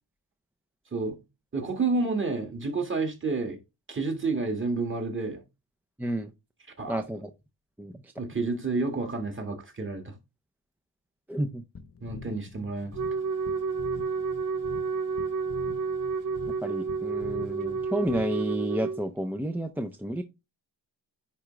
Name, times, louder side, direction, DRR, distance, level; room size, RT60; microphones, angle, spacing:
voice 1, 1.5-3.6 3.9-5.4 6.8-7.0 8.2-10.1 12.0-13.0, right 3 dB, 30° right, 1.8 m, -30 dB
voice 2, 6.0-6.3 6.9-7.3 7.8-8.1 11.3-11.6 16.6-20.2, right 1 dB, 5° right, 0.5 m, -31 dB
sound 1, 11.7-18.6, left 4 dB, 35° left, 0.8 m, -45 dB
Wind instrument woodwind instrument, 12.9-19.0, right 5 dB, 50° right, 0.6 m, -30 dB
9.8 x 3.7 x 3.2 m
wide cardioid pair, 125°, 41 cm